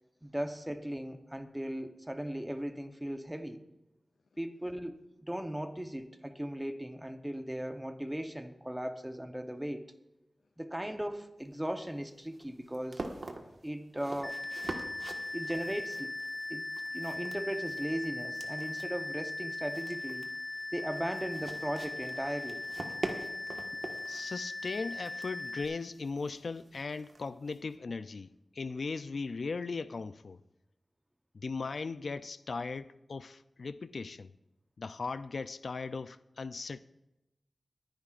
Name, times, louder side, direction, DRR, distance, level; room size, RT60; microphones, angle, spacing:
voice 1, 0.2-3.6 4.4-9.9 10.6-13.0 13.6-14.4 15.3-16.2 16.5-20.3 20.7-22.7, equal, 10° right, 0.8 m, -37 dB
sound 1, 11.4-27.7, right 2 dB, 60° right, 1.4 m, -46 dB
sound 2, 14.2-25.6, left 2 dB, 15° left, 1.0 m, -39 dB
voice 2, 24.1-30.4 31.3-34.3 34.8-36.8, left 4 dB, 70° left, 0.4 m, -38 dB
22.5 x 10.5 x 2.5 m
wide cardioid pair, 110°, 0 cm